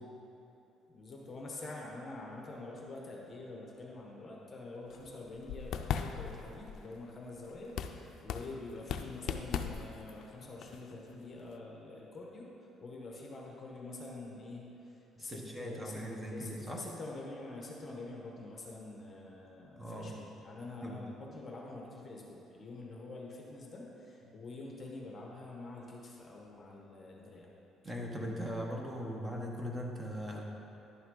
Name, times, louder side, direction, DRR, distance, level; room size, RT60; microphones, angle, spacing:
voice 1, 0.9-12.5 12.8-27.5, left 2 dB, 30° left, -2 dB, 1.1 m, -46 dB
sound 1, 4.9-11.5, left 8 dB, 60° left, 0.4 m, -40 dB
voice 2, 15.2-16.8 19.7-20.1 20.8-21.0 27.8-30.4, equal, 15° right, -1 dB, 1.0 m, -40 dB
11.0 x 5.8 x 3.8 m, 2.9 s
cardioid pair, 145°, 0 cm